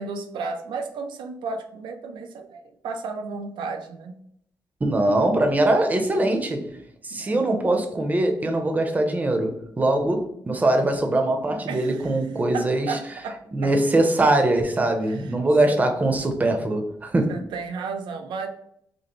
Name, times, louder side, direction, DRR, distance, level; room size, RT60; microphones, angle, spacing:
voice 1, 0.0-4.2 7.1-7.5 11.7-12.2 12.5-13.7 15.0-15.4 15.7-15.8 17.3-18.5, right 4 dB, 90° right, 0.4 m, -33 dB
voice 2, 4.8-6.8 7.0-13.0 13.5-17.3, right 2 dB, 20° right, 0.6 m, -22 dB
5.2 x 2.0 x 3.0 m
cardioid pair, 135°, 8 cm